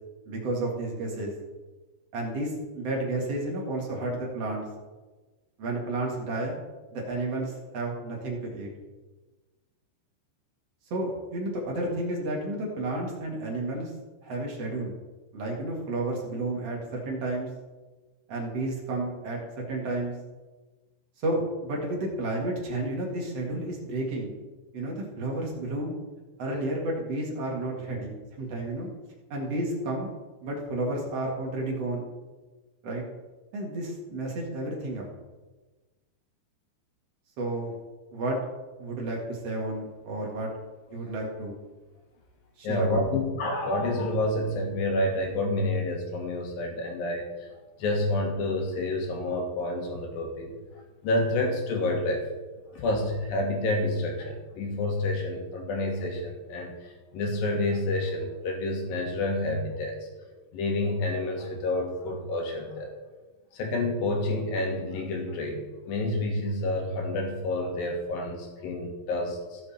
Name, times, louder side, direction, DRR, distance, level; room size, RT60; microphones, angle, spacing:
voice 1, 0.3-1.3 2.1-4.7 5.6-6.6 6.9-8.7 10.9-13.9 14.2-14.9 15.3-17.5 18.3-20.2 21.2-24.3 24.7-25.9 26.4-28.9 29.3-30.1 30.4-32.1 32.8-33.0 33.5-35.1 37.4-37.7 38.1-38.4 38.8-40.5 40.9-41.6 42.6-43.1, right 2 dB, 45° right, -2 dB, 2.3 m, -31 dB
voice 2, 42.6-47.5 47.8-50.5 51.0-52.3 52.7-60.1 60.5-62.9 63.5-69.6, left 2 dB, 60° left, 2 dB, 2.9 m, -29 dB
16.0 x 6.5 x 4.3 m, 1.2 s
omnidirectional pair, 5.2 m